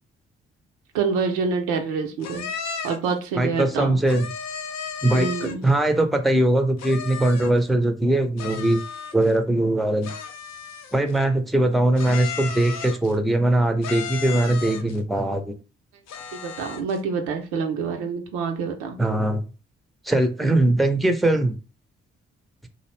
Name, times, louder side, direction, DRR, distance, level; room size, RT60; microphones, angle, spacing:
voice 1, 0.9-2.5 2.8-4.0 5.1-5.7 16.3-19.0 20.4-20.5, right 5 dB, 85° right, 4 dB, 0.5 m, -27 dB
sound 1, 2.2-3.1 4.1-5.7 6.8-7.6 8.4-9.4 10.0-11.2 12.0-13.2 13.8-15.0 16.1-17.0, left 6 dB, 65° left, 0.5 m, -34 dB
voice 2, 3.4-4.3 5.0-8.8 9.1-10.1 10.9-15.5 19.0-19.4 20.1-21.6, right 1 dB, ahead, 7 dB, 0.5 m, -21 dB
2.5 x 2.0 x 3.0 m, 0.33 s
hypercardioid pair, 45°, 29 cm